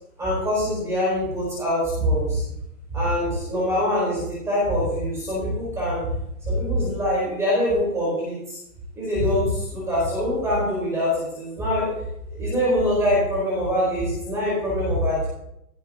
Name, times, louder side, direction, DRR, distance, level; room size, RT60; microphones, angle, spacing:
voice 1, 0.2-2.4 2.9-6.0 6.4-8.6 8.9-11.9 12.3-15.3, equal, 5° right, -7 dB, 4.2 m, -24 dB
18.0 x 7.6 x 3.7 m, 0.78 s
hypercardioid pair, 175°, 46 cm